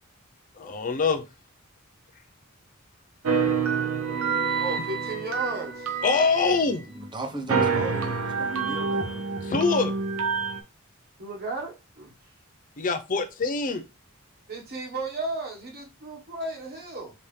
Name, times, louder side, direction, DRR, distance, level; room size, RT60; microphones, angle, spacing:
voice 1, 0.5-1.2 6.0-6.8 9.4-9.9 12.8-13.8, left 4 dB, 40° left, 0.5 m, -24 dB
sound 1, 3.2-7.1 7.5-10.6, right 5 dB, 85° right, 0.8 m, -27 dB
voice 2, 3.3-5.9 11.2-12.1 14.5-17.1, right 2 dB, 50° right, 1.3 m, -35 dB
voice 3, 7.0-9.3, right 3 dB, 20° right, 0.8 m, -35 dB
5.1 x 2.8 x 3.2 m
head